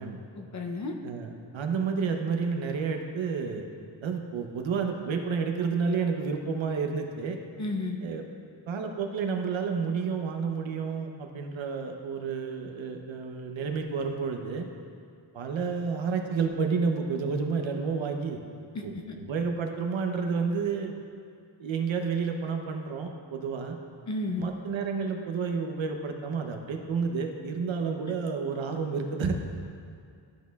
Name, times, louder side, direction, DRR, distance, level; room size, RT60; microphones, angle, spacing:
voice 1, 0.3-0.9 7.6-8.0 18.7-18.8 24.1-24.5, left 2 dB, 40° left, 3 dB, 0.6 m, -32 dB
voice 2, 1.0-3.6 4.0-7.4 8.0-8.2 8.7-14.7 15.3-18.4 18.8-20.9 21.6-23.8 24.4-29.3, right 5 dB, 80° right, 4 dB, 0.8 m, -30 dB
12.5 x 6.4 x 2.3 m, 2.3 s
wide cardioid pair, 160°, 46 cm